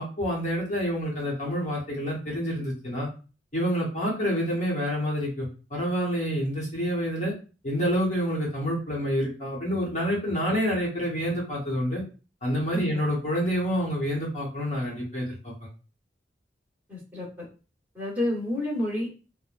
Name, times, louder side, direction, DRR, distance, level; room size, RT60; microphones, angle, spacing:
voice 1, 0.0-3.1 3.5-7.3 7.6-12.0 12.4-15.7, equal, 45° left, -4 dB, 1.0 m, -28 dB
voice 2, 16.9-17.2 17.9-19.1, left 1 dB, 10° right, -6 dB, 1.1 m, -29 dB
3.1 x 2.1 x 2.4 m, 0.35 s
head